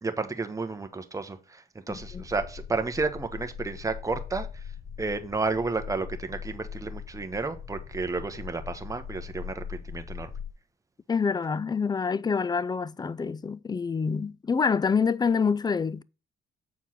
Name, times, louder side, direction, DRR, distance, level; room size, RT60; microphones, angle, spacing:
voice 1, 0.0-4.7 5.0-10.3, right 3 dB, 15° right, 1.0 m, -32 dB
sound 1, 1.9-10.5, left 7 dB, 40° left, 0.7 m, -41 dB
voice 2, 1.9-2.2 11.1-16.0, left 5 dB, 20° left, 0.4 m, -27 dB
7.5 x 4.5 x 5.7 m
cardioid pair, 90°, 20 cm